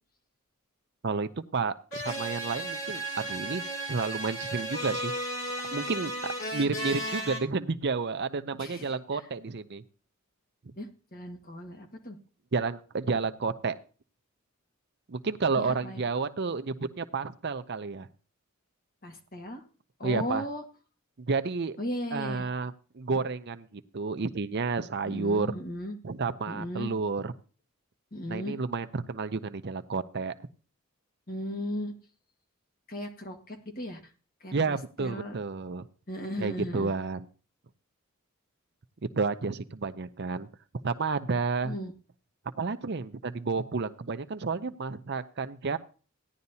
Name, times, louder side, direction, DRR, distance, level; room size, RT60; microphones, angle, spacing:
voice 1, 1.0-5.1 5.7-9.8 12.5-13.8 15.1-18.1 20.0-20.4 21.2-21.8 22.1-25.5 26.0-27.3 28.3-30.4 34.5-35.9 36.4-37.3 39.2-40.5 40.8-41.7 42.6-45.8, right 4 dB, 50° right, 11 dB, 0.6 m, -31 dB
sound 1, 1.9-7.4, right 1 dB, 65° left, 2.7 m, -34 dB
voice 2, 8.6-9.2 10.8-12.2 15.5-16.0 19.0-19.6 20.0-20.6 21.8-22.5 25.1-26.0 26.5-26.9 28.1-28.5 31.3-31.9 32.9-34.0 34.4-35.4 36.1-36.9 41.6-41.9, equal, 40° left, 3 dB, 1.7 m, -36 dB
16.0 x 10.5 x 2.8 m, 0.38 s
head